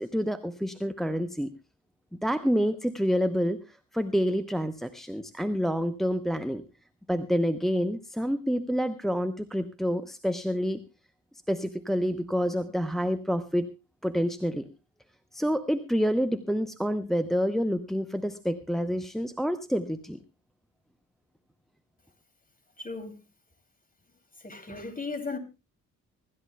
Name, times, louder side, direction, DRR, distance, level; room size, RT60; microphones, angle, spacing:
voice 1, 0.0-1.5 2.2-6.6 7.1-10.8 11.5-13.7 14.0-14.7 15.3-20.2, equal, ahead, 0.8 m, -28 dB
voice 2, 22.8-23.2 24.4-25.4, left 3 dB, 20° left, 2.8 m, -36 dB
25.0 x 13.0 x 2.3 m
figure-of-eight pair, 40°, 46 cm